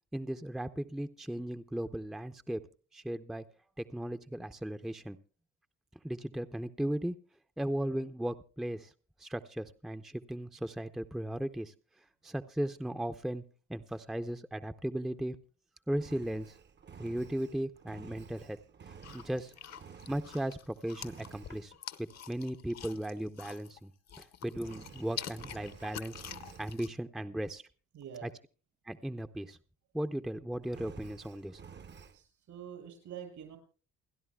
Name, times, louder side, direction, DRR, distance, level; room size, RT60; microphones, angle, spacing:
voice 1, 0.1-2.6 2.9-3.4 3.8-5.2 6.0-7.2 7.6-8.9 9.2-11.7 12.2-13.4 13.7-15.4 15.9-16.5 17.0-18.6 18.9-19.5 20.1-21.7 22.0-23.9 24.2-26.2 26.6-27.6 28.2-28.3 28.9-29.6 29.9-31.6, right 1 dB, ahead, 8 dB, 0.5 m, -36 dB
Engine, 15.9-20.6 21.0-21.7 24.5-26.8 30.6-32.2, right 6 dB, 35° right, 0.7 m, -52 dB
sound 1, 19.0-23.8 24.1-26.9, left 9 dB, 60° left, 0.9 m, -46 dB
voice 2, 27.9-28.3 32.1-33.6, right 9 dB, 75° right, 4 dB, 5.7 m, -46 dB
29.0 x 10.5 x 2.3 m, 0.36 s
cardioid pair, 90°, 30 cm